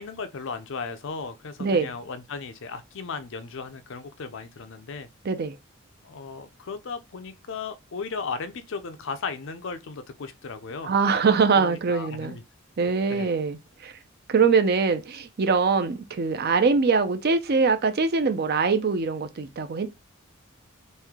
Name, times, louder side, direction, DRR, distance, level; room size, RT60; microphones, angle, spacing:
voice 1, 0.0-5.1 6.0-10.9 11.5-12.4 13.1-13.3, left 4 dB, 60° left, 0.5 m, -36 dB
voice 2, 1.6-1.9 5.2-5.6 10.8-12.4 12.8-13.6 13.8-13.9 14.3-19.9, right 5 dB, 50° right, 0.5 m, -23 dB
3.1 x 2.7 x 3.6 m
head